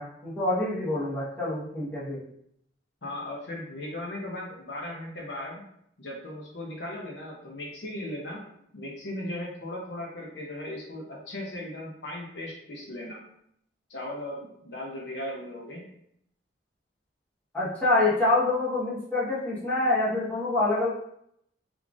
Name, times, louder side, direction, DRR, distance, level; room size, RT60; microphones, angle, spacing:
voice 1, 0.0-2.2 17.5-20.9, left 2 dB, 10° left, -9 dB, 1.1 m, -26 dB
voice 2, 3.0-5.6 6.0-8.4 8.7-13.2 13.9-15.8, left 1 dB, 65° left, -2 dB, 0.8 m, -37 dB
3.6 x 3.2 x 2.5 m, 0.71 s
head